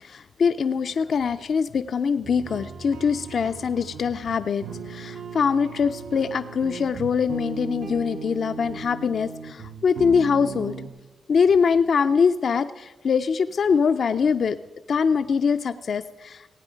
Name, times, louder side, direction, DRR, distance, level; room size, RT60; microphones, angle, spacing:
voice 1, 0.0-10.8 11.3-14.6 14.9-16.5, left 6 dB, 60° left, 10 dB, 0.4 m, -23 dB
sound 1, 2.2-10.9, right 5 dB, 85° right, 0.9 m, -37 dB
16.5 x 9.1 x 5.0 m, 1.2 s
cardioid pair, 100°, 0 cm